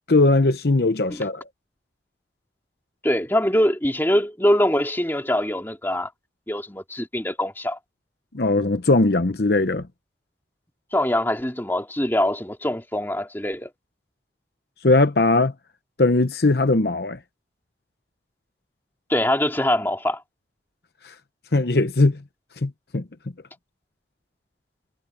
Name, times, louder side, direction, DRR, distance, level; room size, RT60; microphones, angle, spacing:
voice 1, 0.1-1.4 8.3-9.8 14.8-15.5 16.0-17.2 21.0-21.1 21.5-22.2 22.6-23.0, left 2 dB, 60° left, 0.9 m, -19 dB
voice 2, 3.0-6.1 6.5-7.8 10.9-13.7 19.1-20.2, left 1 dB, 10° left, 2.5 m, -23 dB
head